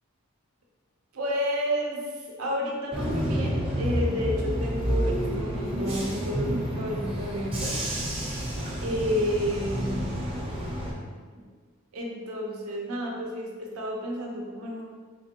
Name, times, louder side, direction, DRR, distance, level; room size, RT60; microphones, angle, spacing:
voice 1, 1.1-7.8 8.8-11.4 11.9-14.8, equal, 90° right, -1 dB, 0.8 m, -31 dB
Bus / Engine, 2.9-10.9, equal, 25° right, 0.7 m, -29 dB
3.4 x 3.4 x 2.9 m, 1.6 s
head